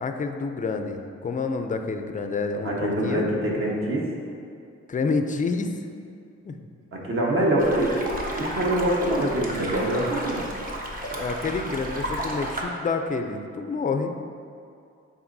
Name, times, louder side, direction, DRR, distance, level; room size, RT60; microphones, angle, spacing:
voice 1, 0.0-3.3 4.9-5.9 6.4-6.6 11.1-14.1, left 4 dB, 30° left, 6 dB, 0.4 m, -28 dB
voice 2, 2.6-4.1 6.9-10.4, right 1 dB, 45° right, -3 dB, 1.3 m, -24 dB
sound 1, 7.6-12.6, right 1 dB, 30° right, 1.0 m, -33 dB
8.7 x 4.0 x 2.7 m, 2.4 s
cardioid pair, 85°, 29 cm